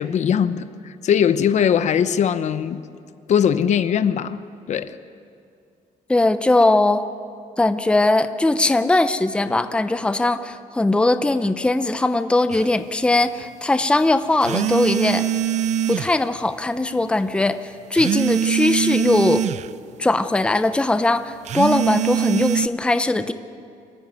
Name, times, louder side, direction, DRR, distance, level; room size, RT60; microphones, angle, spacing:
voice 1, 0.0-2.8 3.3-4.4 4.7-5.0, left 8 dB, 55° left, 0.8 m, -20 dB
voice 2, 6.1-7.0 7.6-15.3 15.9-19.4 20.0-23.3, left 2 dB, 5° left, 0.7 m, -20 dB
sound 1, 12.5-12.7 14.4-16.2 17.9-19.7 21.5-22.7, right 10 dB, 55° right, 0.5 m, -22 dB
26.0 x 14.5 x 9.4 m
cardioid pair, 140°, 14 cm